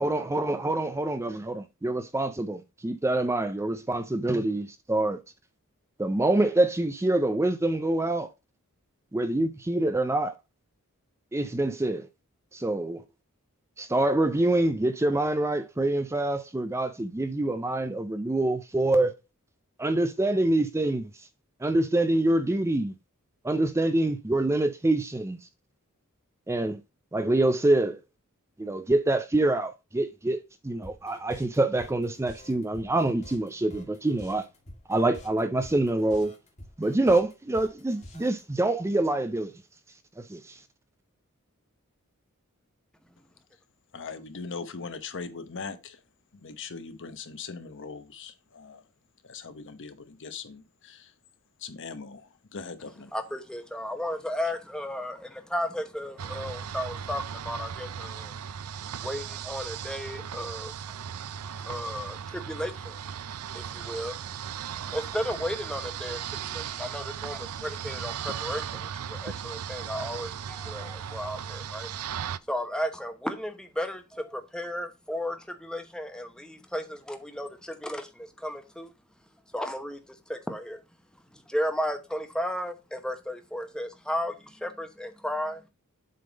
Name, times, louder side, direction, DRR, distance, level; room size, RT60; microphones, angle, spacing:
voice 1, 0.0-5.2 6.0-8.3 9.1-10.3 11.3-12.1 12.5-13.0 13.8-19.1 19.8-21.1 21.6-22.9 23.4-25.4 26.5-26.8 27.1-28.0 28.6-34.4 34.9-36.3 36.8-39.5 40.2-40.6, right 2 dB, 10° right, 0.4 m, -26 dB
sound 1, 30.8-38.4, left 1 dB, 30° left, 1.7 m, -48 dB
voice 2, 43.9-46.0 46.3-48.8 49.2-51.1 51.6-53.1, left 5 dB, 55° left, 0.9 m, -40 dB
voice 3, 53.1-58.4 59.0-61.0 61.6-63.0 63.5-64.2 64.5-71.9 72.5-78.9 79.5-80.0 80.3-80.8 81.3-85.6, equal, 5° left, 0.9 m, -34 dB
sound 2, 56.2-72.4, right 8 dB, 70° right, 0.4 m, -37 dB
7.7 x 3.7 x 5.0 m
head